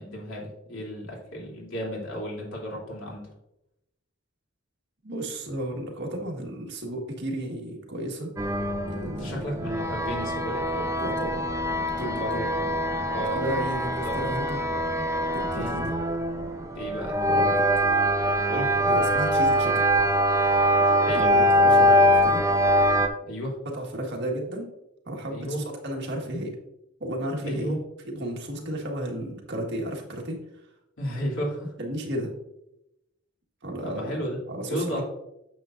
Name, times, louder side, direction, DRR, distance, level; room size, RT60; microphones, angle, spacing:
voice 1, 0.0-3.3 9.0-10.9 11.9-13.4 14.0-14.3 15.5-15.7 16.7-17.2 18.5-18.8 20.9-21.3 23.3-23.6 25.3-25.6 27.4-27.8 28.5-28.7 31.0-31.7 33.8-34.4 34.6-35.0, equal, 90° left, -3 dB, 3.0 m, -33 dB
voice 2, 5.0-8.3 8.8-9.5 11.0-11.4 11.8-12.4 13.3-14.6 15.3-15.9 17.3-17.6 18.9-19.8 21.1-22.7 23.7-24.7 25.0-26.6 27.0-27.7 28.0-30.4 31.8-32.3 33.6-34.2 34.5-35.0, right 1 dB, 60° right, 0 dB, 1.7 m, -33 dB
sound 1, 8.4-23.1, equal, 15° right, 0.6 m, -23 dB
9.1 x 7.1 x 2.6 m, 0.86 s
head